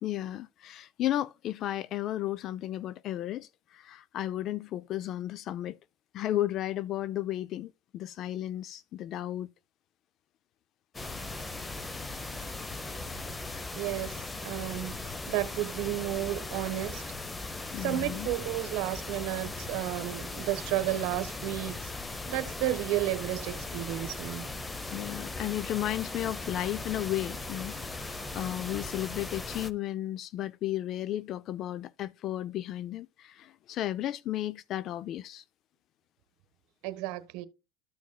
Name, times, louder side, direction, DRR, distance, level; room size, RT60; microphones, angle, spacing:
voice 1, 0.0-5.8 6.1-9.5 17.7-18.3 24.9-35.4, left 13 dB, 45° left, 0.3 m, -34 dB
sound 1, 10.9-29.7, left 3 dB, 10° left, 0.7 m, -38 dB
voice 2, 13.7-17.0 17.8-21.9 22.3-24.5 36.8-37.5, right 15 dB, 60° right, 1.2 m, -32 dB
13.5 x 6.2 x 2.2 m
supercardioid pair, 120°, 0 cm